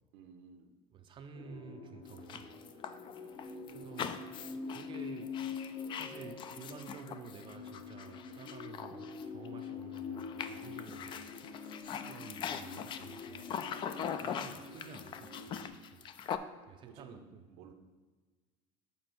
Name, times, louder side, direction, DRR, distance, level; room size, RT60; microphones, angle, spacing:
voice 1, 0.1-0.7 3.2-3.7 16.6-17.7, right 6 dB, 75° right, 5 dB, 0.9 m, -56 dB
voice 2, 0.9-2.5 3.0-3.1 3.7-4.2 4.5-11.3 11.9-13.5 14.2-16.1 16.7-17.4, right 6 dB, 35° right, 6 dB, 0.5 m, -51 dB
sound 1, 1.3-15.7, left 5 dB, 65° left, 1.3 m, -45 dB
sound 2, 2.1-9.7 9.9-16.4, left 8 dB, 30° left, 0.3 m, -42 dB
6.8 x 3.4 x 6.1 m, 1.3 s
cardioid pair, 135°, 15 cm